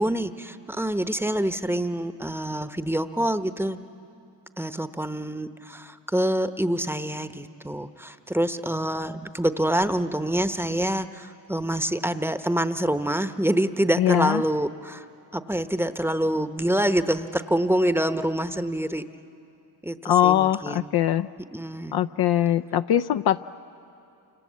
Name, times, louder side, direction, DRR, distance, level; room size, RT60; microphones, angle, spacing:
voice 1, 0.0-3.8 4.6-15.0 15.3-19.1 19.8-20.9 21.5-22.0, right 1 dB, 5° right, 10 dB, 0.9 m, -26 dB
voice 2, 14.0-14.4 20.0-21.3 21.9-23.4, left 11 dB, 55° left, 9 dB, 0.5 m, -21 dB
28.5 x 26.0 x 7.5 m, 2.7 s
supercardioid pair, 65°, 45 cm